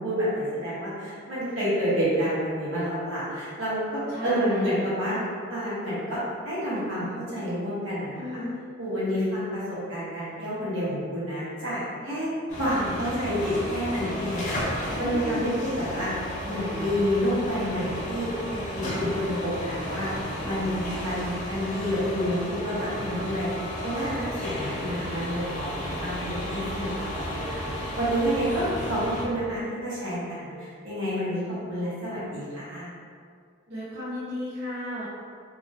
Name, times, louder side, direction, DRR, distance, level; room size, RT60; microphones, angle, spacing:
voice 1, 0.0-5.2 5.5-6.2 6.4-8.4 8.8-12.3 12.6-20.1 20.4-23.5 23.8-31.4 31.7-32.9, equal, 85° right, -10 dB, 1.4 m, -29 dB
voice 2, 4.1-4.7 5.1-5.3 8.1-8.6 15.0-15.5 33.7-35.1, left 1 dB, 55° right, -11 dB, 0.6 m, -34 dB
sound 1, 12.5-29.2, equal, 40° left, 0.7 m, -33 dB
3.0 x 2.6 x 2.7 m, 2.2 s
head